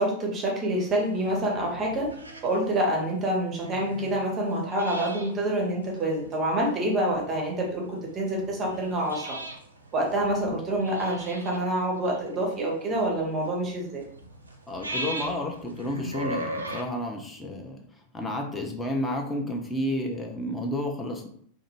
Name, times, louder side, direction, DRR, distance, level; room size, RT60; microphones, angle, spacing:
voice 1, 0.0-2.1 2.4-9.4 9.9-14.0, right 1 dB, 25° right, -1 dB, 0.7 m, -27 dB
sound 1, 0.7-16.8, right 1 dB, 80° right, 0.4 m, -40 dB
voice 2, 14.7-17.8 18.1-21.3, left 1 dB, 10° left, 1 dB, 0.6 m, -31 dB
2.5 x 2.4 x 2.9 m, 0.62 s
figure-of-eight pair, 90°, 0 cm